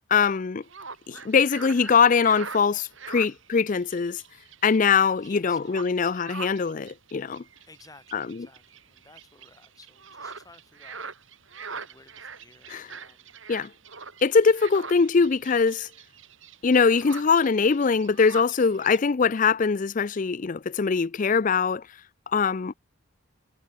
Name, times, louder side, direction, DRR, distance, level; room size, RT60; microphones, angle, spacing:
voice 1, 0.1-0.6 1.1-4.2 4.6-7.4 8.1-8.4 12.7-12.8 13.5-13.7 14.2-15.9 16.6-21.8 22.3-22.7, left 5 dB, 40° left, 0.4 m, -22 dB
sound 1, 0.6-19.0, right 5 dB, 70° right, 6.7 m, -44 dB
voice 2, 5.2-6.0 7.7-11.1 11.7-13.4, left 3 dB, 15° left, 5.6 m, -54 dB
head